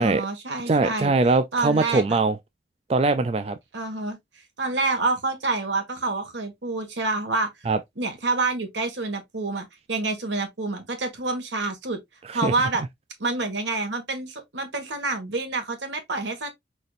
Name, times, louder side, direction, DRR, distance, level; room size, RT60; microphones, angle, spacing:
voice 1, 0.0-1.1 1.5-2.0 3.7-4.2 4.6-7.5 8.0-12.0 12.3-12.8 13.2-16.5, right 3 dB, 85° right, 1.8 m, -27 dB
voice 2, 0.7-2.4 2.9-3.6 7.7-7.8 12.3-12.5, right 3 dB, 35° right, 0.3 m, -21 dB
5.1 x 4.1 x 2.5 m
head